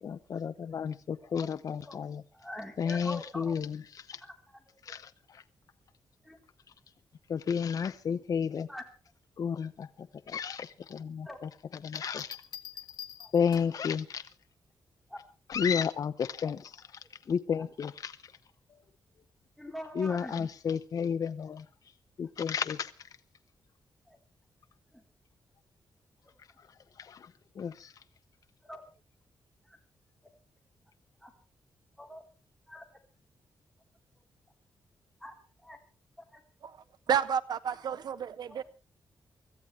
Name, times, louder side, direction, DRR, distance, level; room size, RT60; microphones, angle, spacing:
voice 1, 0.0-2.2 2.8-3.8 4.0-4.2 4.9-5.4 7.3-8.7 9.4-11.3 11.8-12.4 13.3-14.3 15.5-16.7 17.0-18.3 18.7-18.8 20.0-21.7 22.2-23.1 26.6-26.7 27.0-28.0, left 7 dB, 55° left, 0.7 m, -32 dB
voice 2, 1.2-2.0 2.3-3.6 4.2-5.0 6.2-6.4 8.0-8.2 8.5-8.8 11.2-11.4 13.2-13.3 15.1-15.2 16.4-16.5 17.0-17.1 17.6-17.7 19.6-20.5 24.1-24.2 24.9-25.0 26.2-26.4 28.6-28.8 29.6-29.8 30.2-30.4 31.2-31.3 32.0-32.3 32.7-32.8 35.2-35.8 36.2-36.4 36.8-36.9 38.4-38.6, left 1 dB, ahead, 3.7 m, -45 dB
Bell, 12.0-13.9 15.5-15.9, left 9 dB, 70° left, 1.3 m, -46 dB
voice 3, 37.1-38.6, right 8 dB, 70° right, 1.1 m, -30 dB
24.5 x 14.0 x 3.2 m
wide cardioid pair, 125°, 7 cm